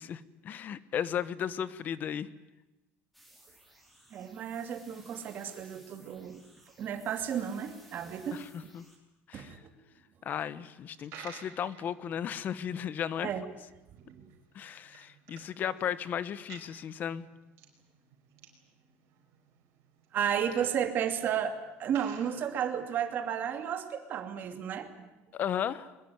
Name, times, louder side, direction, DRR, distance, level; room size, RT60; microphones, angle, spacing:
voice 1, 0.0-2.3 8.3-8.8 9.3-9.6 10.2-13.3 14.5-17.3 25.3-25.9, left 9 dB, 35° left, 17 dB, 1.1 m, -35 dB
sound 1, 3.1-9.0, right 1 dB, ahead, 4.9 m, -59 dB
voice 2, 4.1-6.4 6.8-8.7 9.3-9.7 13.2-13.4 14.0-14.2 20.1-21.5 21.8-24.9, right 8 dB, 40° right, 7 dB, 2.7 m, -33 dB
Coin (dropping), 10.8-23.1, right 8 dB, 60° right, 5.3 m, -54 dB
22.5 x 21.0 x 9.5 m, 1.0 s
cardioid pair, 160°, 5 cm